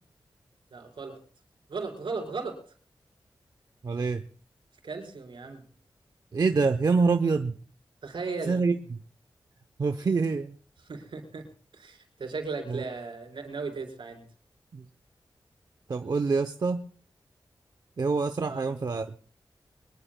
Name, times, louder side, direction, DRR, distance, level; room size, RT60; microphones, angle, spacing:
voice 1, 0.7-1.2 1.7-2.6 4.8-5.6 8.0-8.6 10.9-11.4 11.8-14.2 18.4-18.8, right 4 dB, 80° right, 4 dB, 4.3 m, -36 dB
voice 2, 3.8-4.2 6.3-7.6 8.5-9.0 9.8-10.6 12.7-12.8 14.7-14.8 15.9-16.8 18.0-19.1, right 4 dB, 55° right, 7 dB, 0.7 m, -26 dB
23.0 x 20.5 x 2.2 m, 0.43 s
wide cardioid pair, 115°, 8 cm